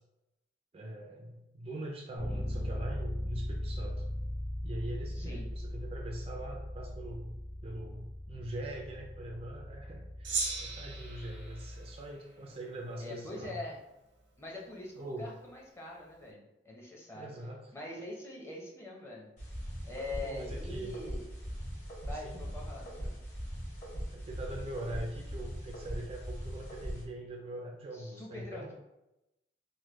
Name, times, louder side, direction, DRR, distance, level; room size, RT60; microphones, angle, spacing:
voice 1, 0.7-4.0 4.6-7.4 7.6-13.6 15.0-15.3 17.1-17.7 20.2-21.0 22.1-22.5 24.1-28.7, right 1 dB, 30° right, 1 dB, 0.3 m, -42 dB
Bass guitar, 2.2-12.0, left 1 dB, 60° left, 0.8 m, -39 dB
voice 2, 5.2-5.5 13.0-13.8 14.4-17.3 17.7-19.3 19.8-21.3 22.1-23.2 27.9-28.7, left 2 dB, 15° left, -3 dB, 0.6 m, -43 dB
Gong, 10.2-12.9, right 4 dB, 85° right, 0.7 m, -38 dB
sound 1, 19.4-27.0, equal, 45° left, 1.1 m, -40 dB
3.2 x 2.1 x 3.1 m, 0.92 s
head